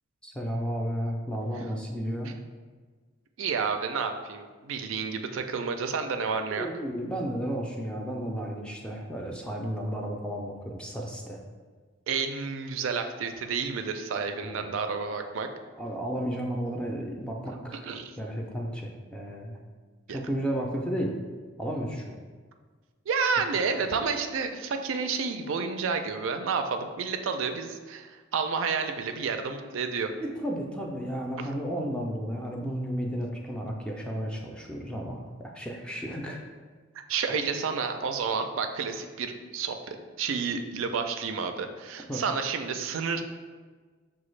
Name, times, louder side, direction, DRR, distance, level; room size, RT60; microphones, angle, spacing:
voice 1, 0.2-2.3 6.6-11.4 14.4-14.7 15.8-19.6 20.1-21.1 21.6-22.2 30.2-36.4 37.3-37.4 42.1-42.2, equal, 5° left, 0 dB, 0.4 m, -33 dB
voice 2, 3.4-6.7 12.1-15.5 17.9-18.1 20.1-20.2 23.1-30.1 37.1-43.2, right 5 dB, 90° right, 6 dB, 0.4 m, -30 dB
5.8 x 2.3 x 3.1 m, 1.5 s
head